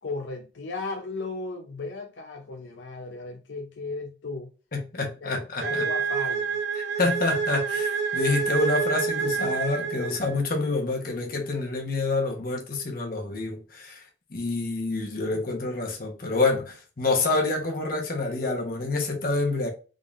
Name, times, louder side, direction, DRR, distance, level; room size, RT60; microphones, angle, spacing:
voice 1, 0.0-4.5 5.0-6.5, left 3 dB, 80° left, 0.6 m, -35 dB
voice 2, 4.7-5.8 7.0-14.0 14.3-19.7, left 3 dB, 50° left, 1.1 m, -27 dB
sound 1, 5.6-10.5, right 6 dB, 70° right, 0.8 m, -28 dB
3.8 x 3.5 x 2.4 m
head